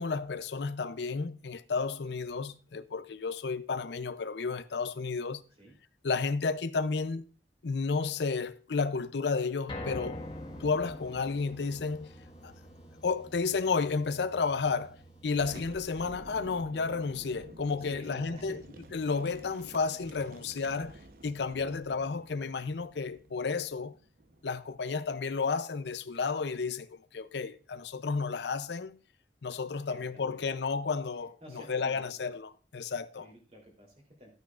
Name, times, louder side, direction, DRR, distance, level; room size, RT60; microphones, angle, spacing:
voice 1, 0.0-5.4 6.0-7.2 7.6-10.2 10.6-12.1 12.4-12.5 13.0-15.0 15.2-18.6 18.9-23.9 24.4-29.0 29.4-31.4 31.7-33.3, left 4 dB, 75° left, 0.5 m, -32 dB
sound 1, 9.7-21.9 22.3-22.4 22.9-23.0, left 1 dB, 25° left, 1.5 m, -48 dB
sound 2, 10.1-15.8, right 4 dB, 5° right, 2.0 m, -58 dB
Boom, 15.3-24.9, right 1 dB, 50° right, 0.9 m, -51 dB
voice 2, 17.8-18.6 29.9-30.5 31.4-32.1 33.2-34.3, equal, 35° right, 3.2 m, -51 dB
12.5 x 9.2 x 2.4 m
head